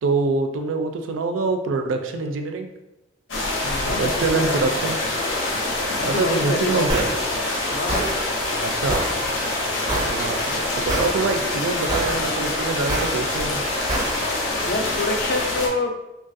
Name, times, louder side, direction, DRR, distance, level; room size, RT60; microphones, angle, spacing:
voice 1, 0.0-2.7 3.9-5.0 6.0-7.1 8.6-9.1 9.8-13.6, right 3 dB, 85° right, 6 dB, 0.4 m, -25 dB
sound 1, 3.3-15.7, left 2 dB, 90° left, 0.6 m, -25 dB
voice 2, 3.6-4.8 6.0-7.1 7.7-8.1 14.6-15.9, left 2 dB, 55° left, 4 dB, 0.4 m, -27 dB
sound 2, 6.9-7.1 7.9-8.1 8.9-9.1 9.9-10.1 10.9-11.1 11.9-12.1 12.9-13.1 13.9-14.1, right 1 dB, 20° right, 0.4 m, -25 dB
3.1 x 2.3 x 2.6 m, 0.92 s
head